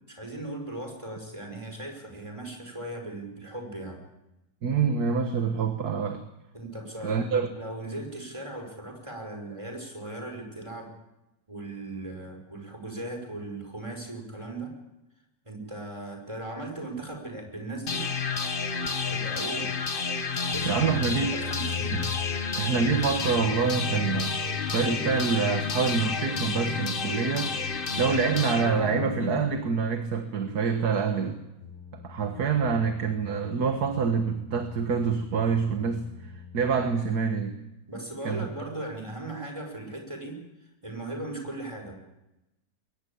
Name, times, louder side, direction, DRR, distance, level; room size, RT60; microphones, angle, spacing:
voice 1, 0.1-4.0 6.5-10.9 11.5-14.7 15.5-18.0 19.1-19.7 20.4-21.0 21.3-22.0 37.9-40.4 40.8-41.9, right 2 dB, 15° right, 3 dB, 5.5 m, -38 dB
voice 2, 4.6-6.2 7.0-7.5 20.7-21.3 21.9-22.0 22.6-24.4 24.7-27.5 28.0-31.4 31.9-37.6 38.3-38.5, right 5 dB, 60° right, 6 dB, 1.9 m, -26 dB
sound 1, 17.9-29.8, left 5 dB, 35° left, 1.2 m, -30 dB
sound 2, 31.6-37.0, left 6 dB, 80° left, 8.7 m, -46 dB
22.0 x 18.5 x 8.6 m, 0.94 s
omnidirectional pair, 1.9 m